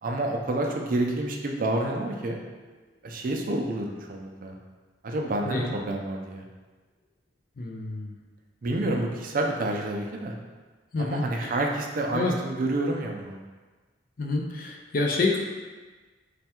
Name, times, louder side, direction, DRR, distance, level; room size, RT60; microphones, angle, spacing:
voice 1, 0.0-2.4 3.0-4.6 5.0-6.4 8.6-10.4 11.0-13.4, right 2 dB, 45° right, 1 dB, 0.4 m, -29 dB
voice 2, 5.4-5.7 7.6-8.2 10.9-11.5 12.1-12.3 14.2-15.4, left 3 dB, 50° left, 1 dB, 0.4 m, -28 dB
3.3 x 2.2 x 4.3 m, 1.3 s
head